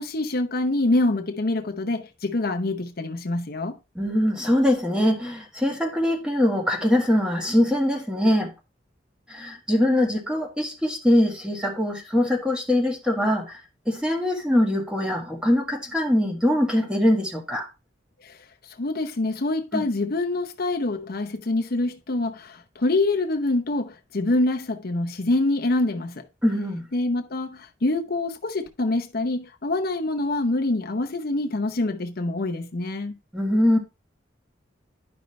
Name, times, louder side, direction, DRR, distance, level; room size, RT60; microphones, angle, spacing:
voice 1, 0.0-3.8 18.2-18.4 18.6-26.3 26.9-33.1, left 2 dB, 55° left, 0.8 m, -25 dB
voice 2, 4.0-8.5 9.3-13.6 13.9-17.7 19.7-19.8 26.4-26.8 33.3-33.8, left 1 dB, 5° right, 1.7 m, -22 dB
11.0 x 5.3 x 3.2 m
head